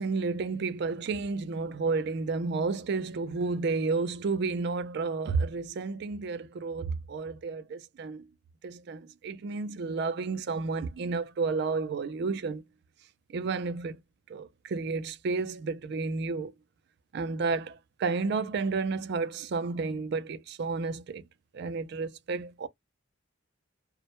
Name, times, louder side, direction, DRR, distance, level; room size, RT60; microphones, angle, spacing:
voice 1, 0.0-8.2 8.6-12.6 13.3-14.0 14.3-16.5 17.1-21.2 21.5-22.7, right 4 dB, 55° right, 0.4 m, -31 dB
2.1 x 2.0 x 2.9 m
head